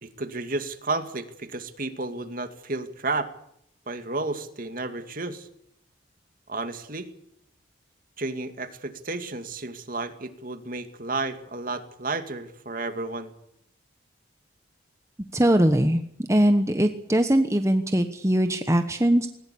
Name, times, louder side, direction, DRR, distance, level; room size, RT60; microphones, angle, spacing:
voice 1, 0.0-3.3 3.9-5.5 6.5-7.1 8.2-13.3, right 3 dB, 45° right, 8 dB, 2.5 m, -32 dB
voice 2, 15.3-16.0 16.3-19.3, right 1 dB, 15° right, 7 dB, 1.2 m, -21 dB
20.0 x 19.5 x 8.6 m, 0.72 s
head